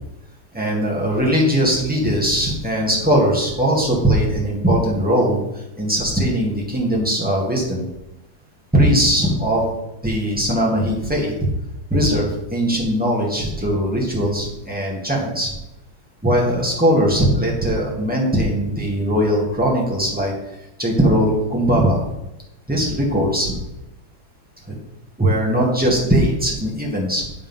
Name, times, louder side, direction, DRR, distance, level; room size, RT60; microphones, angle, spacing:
voice 1, 0.5-7.8 8.7-9.6 10.0-11.3 11.9-15.5 16.2-20.3 20.8-22.0 22.7-23.6 24.7-24.8 25.2-27.3, equal, 5° right, -4 dB, 1.5 m, -20 dB
9.9 x 3.6 x 5.5 m, 0.93 s
omnidirectional pair, 2.3 m